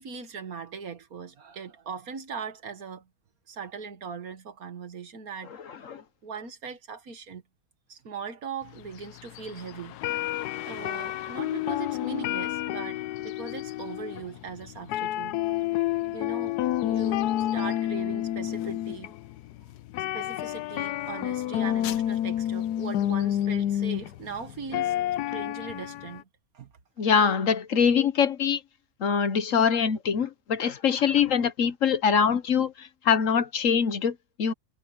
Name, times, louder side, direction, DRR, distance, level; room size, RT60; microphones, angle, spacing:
voice 1, 0.0-3.1 3.5-5.5 6.2-7.4 7.9-10.0 10.7-15.4 16.1-19.1 20.1-25.0 25.3-26.3 26.5-26.7, right 5 dB, 70° right, 1.9 m, -39 dB
voice 2, 5.7-6.0 27.0-28.6 29.0-34.5, left 7 dB, 60° left, 1.2 m, -24 dB
sound 1, 8.8-26.2, left 12 dB, 85° left, 1.2 m, -30 dB
omnidirectional pair, 1.6 m